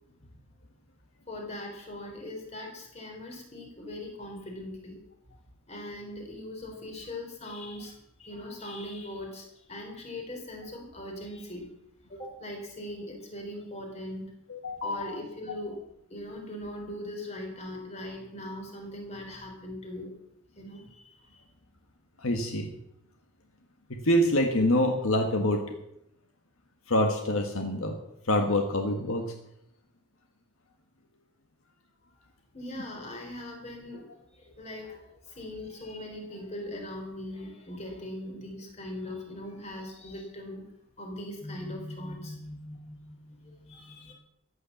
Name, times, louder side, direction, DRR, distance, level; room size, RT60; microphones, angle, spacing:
voice 1, 1.3-5.0 5.7-11.7 12.1-14.3 14.8-15.8 16.1-20.1 20.5-21.4 32.5-40.6 41.0-44.1, left 1 dB, 30° left, 1 dB, 3.9 m, -40 dB
voice 2, 14.5-15.2 22.2-22.7 23.9-25.6 26.9-27.9 28.2-29.2, left 1 dB, 70° left, 4 dB, 1.6 m, -26 dB
14.5 x 9.8 x 7.2 m, 0.81 s
head